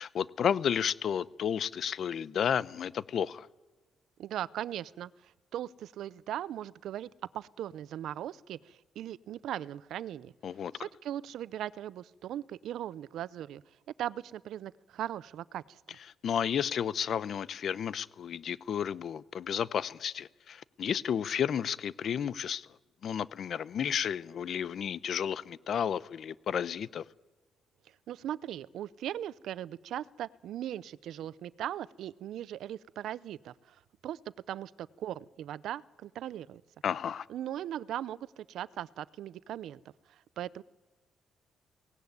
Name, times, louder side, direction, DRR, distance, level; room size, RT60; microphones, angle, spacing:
voice 1, 0.0-3.5 10.4-10.7 16.2-22.7 23.0-27.0 36.8-37.3, left 8 dB, 60° left, 0.7 m, -32 dB
voice 2, 4.2-7.1 7.3-10.3 10.7-13.6 14.0-15.8 27.9-34.2 34.5-36.6 37.3-39.8 40.1-40.6, right 11 dB, 75° right, 0.6 m, -39 dB
18.0 x 17.0 x 9.6 m
cardioid pair, 90°, 0 cm